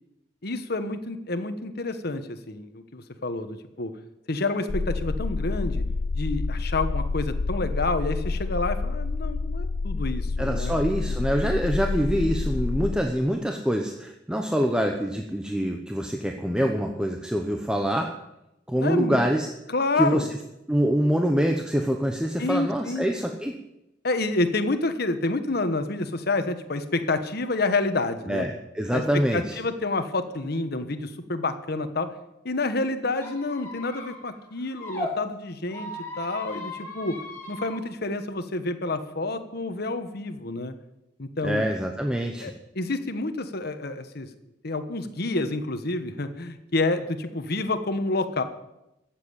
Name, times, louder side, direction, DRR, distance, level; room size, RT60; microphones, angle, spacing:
voice 1, 0.4-3.9 4.3-5.8 6.1-10.8 18.7-19.2 19.7-20.3 22.4-23.1 24.0-28.5 28.9-29.0 29.3-32.1 32.4-35.9 36.2-37.1 37.5-40.7 41.2-41.6 42.4-44.3 44.6-48.4, left 2 dB, 60° left, 9 dB, 1.3 m, -28 dB
sound 1, 4.7-13.0, left 3 dB, 85° left, 0.7 m, -28 dB
voice 2, 10.4-18.1 18.7-19.5 20.0-20.3 20.7-23.6 28.3-29.6 41.4-42.5, equal, 5° right, 3 dB, 0.9 m, -25 dB
Squeak, 33.1-35.1 35.7-37.8, left 1 dB, 15° left, 4.2 m, -37 dB
15.0 x 7.5 x 8.9 m, 0.90 s
head